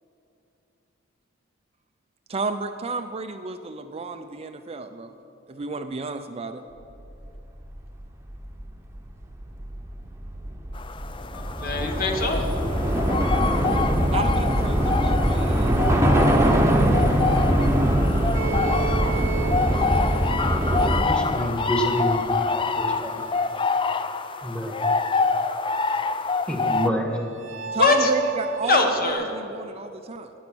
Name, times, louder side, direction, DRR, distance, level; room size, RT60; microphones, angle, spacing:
voice 1, 2.3-5.1 5.5-6.6 14.1-15.7 27.7-30.3, right 3 dB, 30° right, 7 dB, 0.5 m, -32 dB
Train / Subway metro underground, 7.7-7.8 8.0-21.0, right 1 dB, 15° right, 1.0 m, -22 dB
sound 1, 10.7-26.9, left 4 dB, 25° left, 0.4 m, -27 dB
voice 2, 11.3-12.5 27.8-28.1 28.6-29.4, left 3 dB, 45° left, 3 dB, 1.5 m, -22 dB
sound 2, 18.3-25.7 26.0-26.1 26.3-26.4 26.7-29.1, right 7 dB, 70° right, 1.0 m, -37 dB
voice 3, 21.0-23.2 24.4-24.8 26.5-27.2, equal, 5° left, 2 dB, 1.6 m, -27 dB
19.5 x 7.2 x 6.2 m, 3.0 s
head